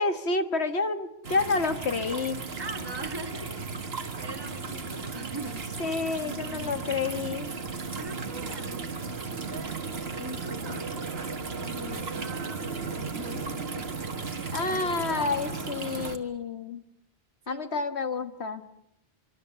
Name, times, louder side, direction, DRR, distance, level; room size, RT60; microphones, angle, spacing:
voice 1, 0.0-2.4 5.8-7.5 14.5-16.8 17.5-18.7, left 4 dB, 85° left, 9 dB, 1.9 m, -29 dB
sound 1, 1.2-16.2, right 4 dB, 70° right, 1.8 m, -35 dB
voice 2, 2.6-5.9 6.2-6.9 7.9-14.1 14.6-15.6 17.5-17.9, right 2 dB, 20° right, 4 dB, 1.8 m, -42 dB
25.5 x 24.0 x 7.0 m, 0.75 s
omnidirectional pair, 1.1 m